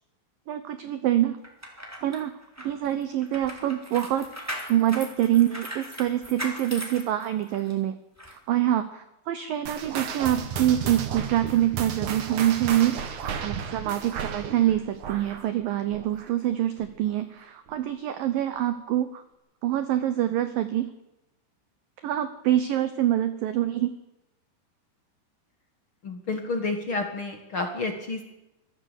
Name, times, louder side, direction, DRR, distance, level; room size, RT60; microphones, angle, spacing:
voice 1, 0.5-1.4 2.0-2.3 2.6-4.3 4.7-8.0 8.3-13.0 13.4-19.2 19.6-20.9 22.0-23.9, right 12 dB, 80° right, 11 dB, 2.0 m, -25 dB
sound 1, 1.4-7.7 8.2-8.3, equal, 5° right, 2.9 m, -39 dB
sound 2, 9.7-16.5 16.8-17.1 17.7-17.8 18.6-18.7, right 7 dB, 55° right, 2.5 m, -33 dB
voice 2, 26.0-28.2, left 3 dB, 60° left, 5 dB, 1.3 m, -30 dB
24.5 x 14.5 x 8.3 m, 0.94 s
omnidirectional pair, 5.4 m